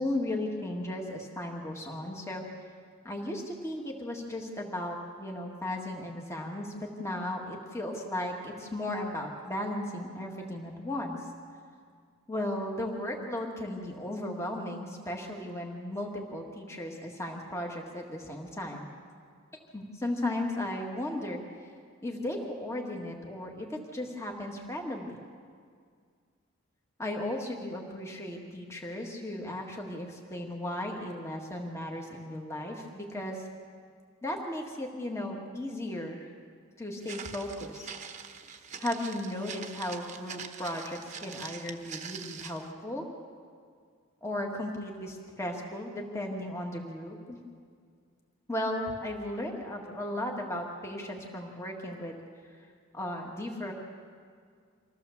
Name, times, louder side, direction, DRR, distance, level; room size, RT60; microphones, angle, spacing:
voice 1, 0.0-2.4 3.0-11.2 12.3-18.9 19.7-21.4 22.0-25.2 27.0-33.5 34.2-36.3 36.8-37.9 38.8-43.0 44.2-47.4 48.5-52.2 52.9-53.7, left 1 dB, 15° left, 0 dB, 1.7 m, -35 dB
Walk footsteps, 37.0-42.7, right 6 dB, 35° right, 1.0 m, -44 dB
25.0 x 15.0 x 7.1 m, 2.1 s
head